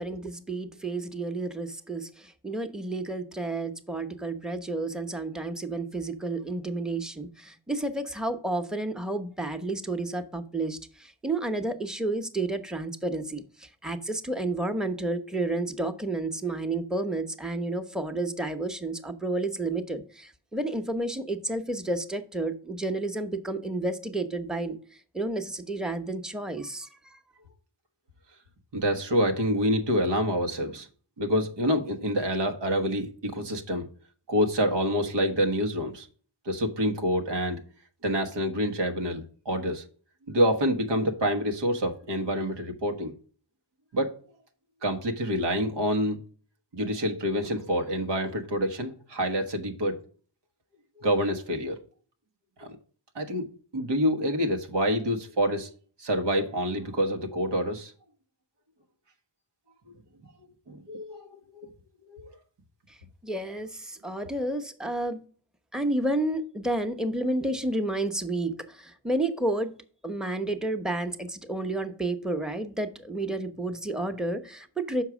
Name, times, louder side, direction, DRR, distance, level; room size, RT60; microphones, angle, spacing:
voice 1, 0.0-24.8 25.1-27.2 63.2-65.2 65.7-69.7 70.0-75.0, right 2 dB, ahead, 0.9 m, -31 dB
voice 2, 28.7-30.9 31.2-33.9 34.3-36.1 36.4-37.6 38.0-39.8 40.3-43.1 43.9-44.1 44.8-46.2 46.7-50.0 51.0-51.8 52.6-52.8 53.1-53.5 53.7-55.7 56.0-57.9 60.7-61.7 62.1-62.3, equal, 85° right, 1.3 m, -27 dB
6.4 x 4.7 x 6.1 m
cardioid pair, 50°, 41 cm